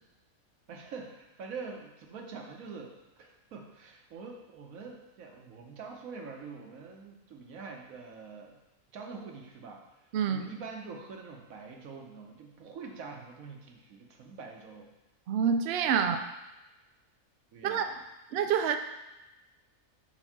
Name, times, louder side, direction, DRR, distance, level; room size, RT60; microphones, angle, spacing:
voice 1, 0.7-8.6 8.9-9.8 10.3-14.9 17.5-18.0, right 4 dB, 85° right, 2 dB, 1.3 m, -45 dB
voice 2, 10.1-10.5 15.3-16.3 17.6-17.9 18.3-18.8, right 7 dB, 65° right, 7 dB, 0.6 m, -27 dB
4.6 x 4.4 x 5.8 m, 1.0 s
omnidirectional pair, 1.4 m